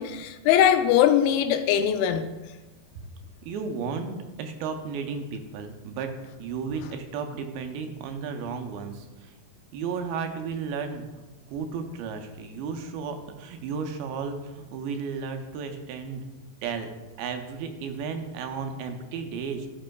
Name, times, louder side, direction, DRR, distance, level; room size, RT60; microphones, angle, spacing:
voice 1, 0.0-2.3, left 10 dB, 85° left, 2.4 m, -21 dB
voice 2, 3.4-4.1 4.4-6.1 6.4-9.3 9.7-11.1 11.5-16.2 16.6-16.9 17.2-19.7, right 5 dB, 80° right, 2.5 m, -33 dB
12.5 x 6.0 x 2.3 m
omnidirectional pair, 4.3 m